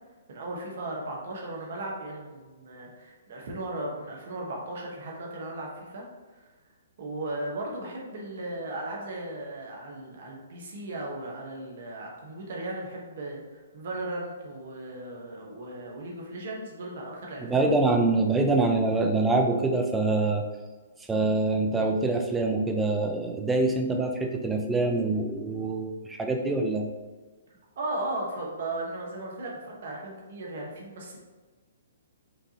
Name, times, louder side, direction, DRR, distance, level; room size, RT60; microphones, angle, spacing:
voice 1, 0.3-6.1 7.0-17.8 27.8-31.2, right 2 dB, 60° right, -1 dB, 1.2 m, -36 dB
voice 2, 17.4-20.4 21.1-26.9, right 2 dB, 10° right, 3 dB, 0.5 m, -25 dB
5.1 x 2.6 x 3.0 m, 1.3 s
hypercardioid pair, 140°, 0 cm